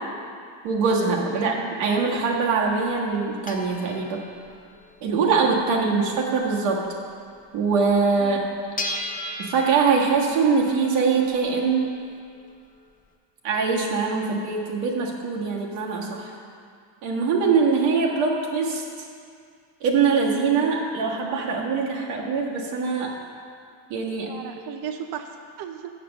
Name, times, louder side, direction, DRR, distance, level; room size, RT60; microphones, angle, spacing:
voice 1, 0.6-4.2 5.0-6.9 7.5-8.4 9.4-11.9 13.4-16.3 17.0-18.8 19.8-23.1 23.9-24.3, right 5 dB, 90° right, -2 dB, 1.6 m, -23 dB
sound 1, 2.0-7.5 7.8-7.9 8.2-13.1, left 1 dB, 15° left, 0.7 m, -38 dB
voice 2, 5.7-6.0 8.2-8.4 24.2-25.9, right 8 dB, 55° right, 6 dB, 0.6 m, -36 dB
6.8 x 6.7 x 6.6 m, 2.2 s
cardioid pair, 95°, 49 cm